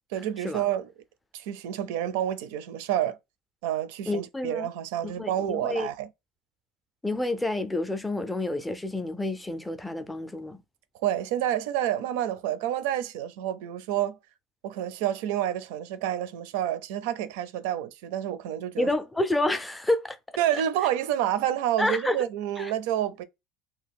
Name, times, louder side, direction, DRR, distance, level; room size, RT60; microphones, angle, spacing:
voice 1, 0.1-0.9 1.3-3.2 3.6-6.1 11.0-14.2 14.6-18.9 20.4-23.2, right 11 dB, 80° right, 0.5 m, -29 dB
voice 2, 4.1-4.7 5.0-5.9 7.0-10.6 18.8-20.2 20.5-20.6 21.8-22.2 22.6-22.7, left 1 dB, 5° left, 0.4 m, -29 dB
2.8 x 2.3 x 3.5 m
cardioid pair, 155°, 0 cm